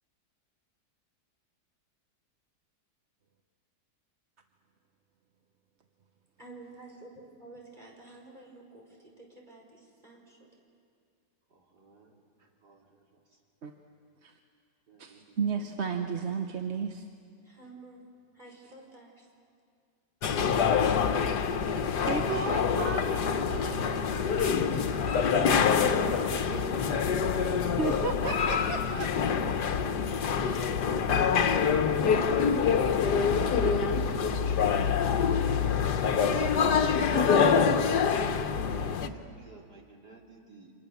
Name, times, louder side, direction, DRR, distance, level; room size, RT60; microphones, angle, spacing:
voice 1, 6.4-10.4 17.4-18.1 18.3-19.3 25.3-25.4 26.2-26.3, right 2 dB, 25° right, -2 dB, 5.5 m, -49 dB
voice 2, 11.5-12.2 12.6-13.4 14.9-15.7 16.0-16.5 21.3-22.9 24.7-27.5 36.1-40.7, right 3 dB, 80° right, 0 dB, 3.2 m, -50 dB
voice 3, 15.0-17.0 22.1-24.0 27.8-29.1 32.2-32.4 33.3-33.8 34.1-34.5, right 5 dB, 45° right, 4 dB, 1.3 m, -34 dB
sound 1, 20.2-39.1, left 6 dB, 85° left, 1.7 m, -26 dB
29.5 x 26.5 x 7.1 m, 2.3 s
omnidirectional pair, 1.7 m